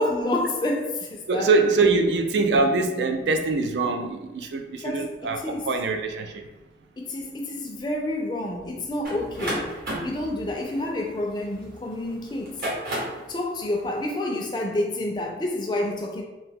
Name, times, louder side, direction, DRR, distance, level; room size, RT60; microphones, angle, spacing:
voice 1, 0.0-1.5 2.5-2.6 4.8-5.7 7.0-9.7 10.0-12.6 13.3-16.2, left 1 dB, 25° left, 1 dB, 0.3 m, -28 dB
voice 2, 1.3-6.5, right 3 dB, 80° right, 6 dB, 0.3 m, -23 dB
sound 1, 9.0-11.8 12.4-13.3, right 1 dB, 50° right, 0.9 m, -32 dB
2.7 x 2.2 x 3.4 m, 1.1 s
head